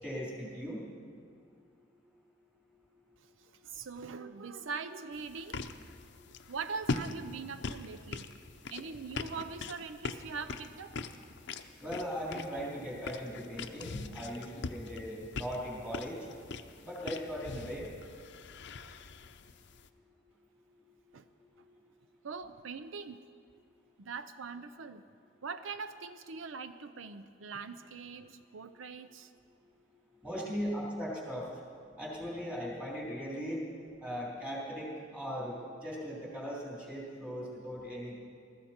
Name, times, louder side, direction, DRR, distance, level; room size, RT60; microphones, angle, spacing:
voice 1, 0.0-0.9 5.9-6.3 8.3-8.4 11.8-16.2 16.8-17.9 20.8-20.9 21.6-21.7 30.1-31.5 32.0-33.6 34.0-38.2, equal, 5° right, -6 dB, 3.5 m, -39 dB
voice 2, 3.4-5.7 6.5-8.3 8.7-11.0 21.1-21.3 22.2-23.2 24.0-25.0 25.4-29.3, right 5 dB, 80° right, 11 dB, 0.6 m, -42 dB
sound 1, 5.1-19.9, left 3 dB, 60° left, 0.6 m, -42 dB
20.5 x 14.0 x 4.4 m, 2.3 s
head